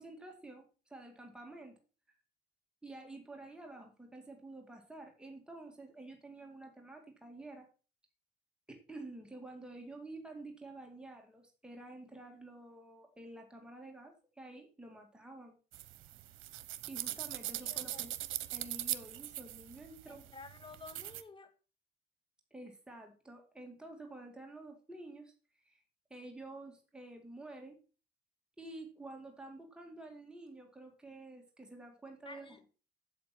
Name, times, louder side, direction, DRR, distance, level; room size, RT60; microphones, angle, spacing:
voice 1, 0.0-1.7 2.8-7.7 8.7-15.6 16.9-18.1 18.5-20.2 22.5-25.8 26.1-27.8 28.6-32.6, right 2 dB, 5° right, 2.2 m, -50 dB
sound 1, 15.7-21.2, right 15 dB, 85° right, 0.8 m, -41 dB
voice 2, 17.6-18.1 20.1-21.5 32.3-32.6, left 3 dB, 25° left, 1.7 m, -52 dB
7.8 x 7.8 x 5.9 m
cardioid pair, 90°, 20 cm